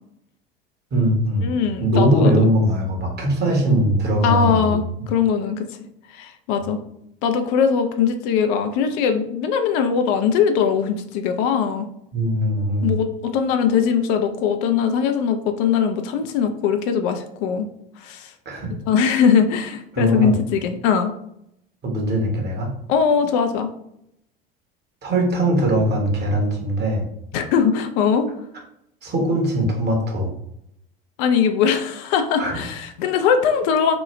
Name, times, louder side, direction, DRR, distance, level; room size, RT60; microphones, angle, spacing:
voice 1, 0.9-4.7 12.1-13.0 18.4-18.7 19.9-20.3 21.8-22.7 25.0-27.0 29.0-30.3 32.4-32.6, right 1 dB, 35° right, 0 dB, 1.2 m, -20 dB
voice 2, 1.4-2.5 4.2-5.7 6.1-6.8 7.2-11.9 12.8-17.7 18.0-18.3 18.9-21.1 22.9-23.7 27.3-28.3 31.2-34.0, left 7 dB, 55° left, 6 dB, 0.5 m, -20 dB
3.0 x 2.2 x 3.1 m, 0.76 s
hypercardioid pair, 75°, 30 cm